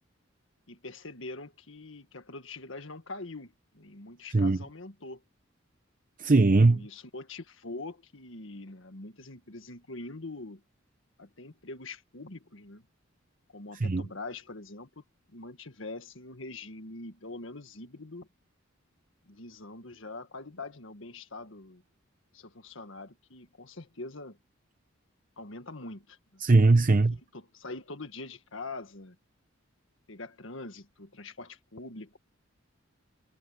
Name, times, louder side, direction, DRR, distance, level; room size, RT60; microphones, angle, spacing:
voice 1, 0.7-5.2 6.6-10.6 11.2-12.9 13.5-15.0 15.3-18.3 19.3-21.8 22.3-24.4 25.4-26.4 26.9-29.2 30.1-32.2, left 2 dB, 65° left, 1.8 m, -43 dB
voice 2, 6.2-6.8 13.8-14.0 26.4-27.1, right 3 dB, 40° right, 0.7 m, -20 dB
head